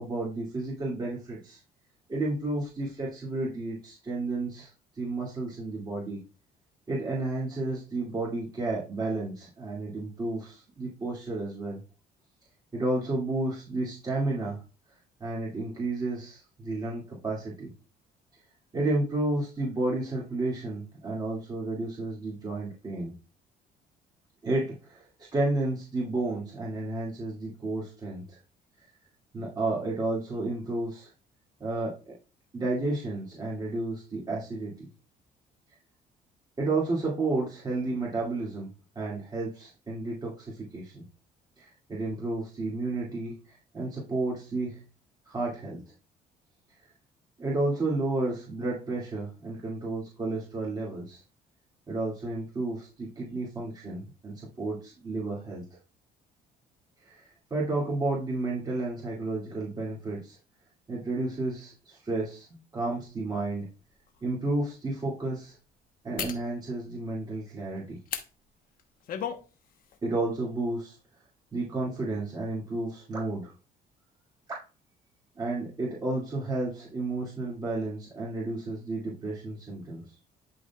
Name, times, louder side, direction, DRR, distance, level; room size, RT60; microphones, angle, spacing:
voice 1, 0.0-1.6 2.1-4.7 5.0-6.2 6.9-11.8 12.7-14.6 15.2-17.7 18.7-23.1 24.4-25.0 25.3-28.4 29.3-31.1 31.6-32.1 32.5-34.7 36.6-38.7 39.0-41.0 41.6-43.3 43.7-44.8 45.3-45.8 47.4-51.2 51.9-55.6 57.1-57.2 57.5-60.4 60.9-63.7 64.2-65.6 66.0-68.0 70.0-71.0 71.5-73.5 74.5-74.6 75.4-80.0, right 2 dB, 25° right, -5 dB, 2.3 m, -31 dB
sound 1, 63.4-63.5 64.1-64.2 66.2-66.5 68.1-68.3 68.8-69.4 69.8-70.0, left 8 dB, 60° left, 1.1 m, -34 dB
11.5 x 4.0 x 2.4 m, 0.32 s
cardioid pair, 110°, 17 cm